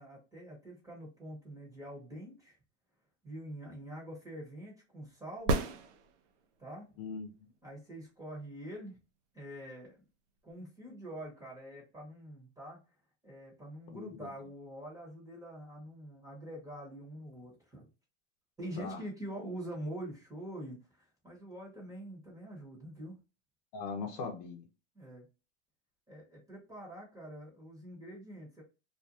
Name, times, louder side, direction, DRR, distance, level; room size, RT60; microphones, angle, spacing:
voice 1, 0.0-2.6 3.2-5.5 6.6-7.0 7.6-9.0 9.3-10.0 10.4-12.8 13.2-17.9 18.6-23.2 24.9-25.3 26.1-28.6, right 1 dB, 10° right, -3 dB, 1.0 m, -45 dB
sound 1, 5.4-6.6 10.5-10.6, right 3 dB, 65° right, 0.7 m, -32 dB
voice 2, 7.0-7.5 13.9-14.3 18.8-19.0 23.7-24.6, left 4 dB, 55° left, 2 dB, 0.8 m, -40 dB
2.5 x 2.3 x 2.8 m, 0.30 s
supercardioid pair, 135°, 37 cm